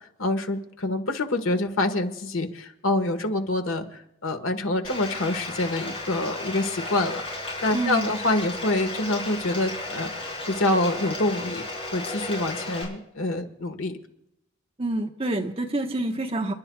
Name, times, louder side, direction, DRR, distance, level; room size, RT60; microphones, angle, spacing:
voice 1, 0.2-3.8 4.2-11.6 11.9-14.0, left 2 dB, 90° left, 7 dB, 1.5 m, -26 dB
Bathtub (filling or washing), 4.8-12.8, left 2 dB, 30° left, 5.3 m, -34 dB
voice 2, 7.7-8.1 14.8-16.5, right 2 dB, 30° right, 2 dB, 1.2 m, -27 dB
30.0 x 12.0 x 2.4 m, 0.82 s
head